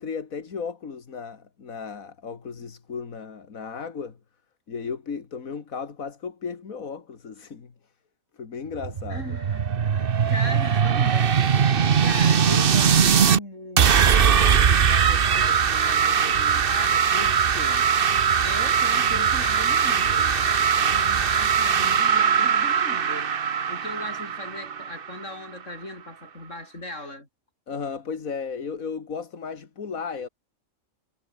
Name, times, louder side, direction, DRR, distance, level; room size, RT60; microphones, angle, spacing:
voice 1, 0.0-4.2 4.7-7.7 8.3-9.4 27.7-30.3, left 5 dB, 80° left, 2.4 m, -35 dB
sound 1, 8.7-13.4 13.8-25.3, right 7 dB, 45° right, 1.0 m, -21 dB
voice 2, 9.1-17.9 18.4-27.3, left 1 dB, 60° left, 8.0 m, -38 dB
omnidirectional pair, 1.4 m